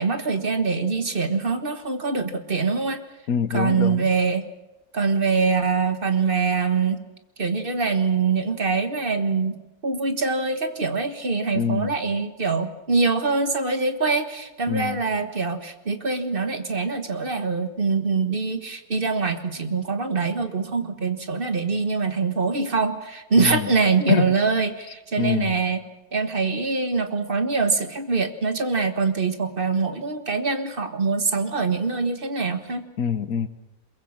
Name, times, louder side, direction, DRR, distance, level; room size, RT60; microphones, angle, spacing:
voice 1, 0.0-3.0 3.5-4.4 4.9-7.0 7.4-25.8 26.1-32.9, right 4 dB, 40° right, 8 dB, 1.7 m, -24 dB
voice 2, 3.3-4.1 11.5-11.9 14.7-15.0 23.4-23.7 24.1-24.4 25.2-25.5 33.0-33.5, left 7 dB, 75° left, 12 dB, 1.5 m, -25 dB
22.5 x 22.0 x 7.4 m, 1.0 s
omnidirectional pair, 1.5 m